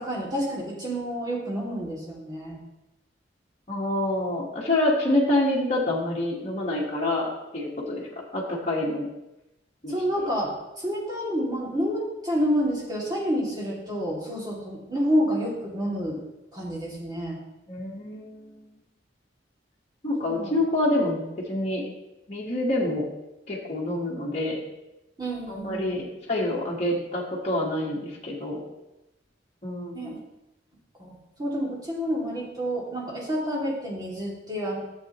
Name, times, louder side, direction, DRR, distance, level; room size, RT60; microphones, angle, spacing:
voice 1, 0.0-2.6 9.9-16.2 16.5-17.4 20.2-20.5 25.2-25.9 29.9-30.2 31.0-34.8, equal, 20° right, -4 dB, 2.4 m, -29 dB
voice 2, 3.7-8.1 8.3-9.1 9.8-10.2 17.7-18.6 20.0-21.8 22.3-23.0 23.5-24.6 25.5-28.6 29.6-30.1, left 1 dB, 35° left, -5 dB, 1.4 m, -27 dB
12.0 x 7.5 x 3.0 m, 0.95 s
head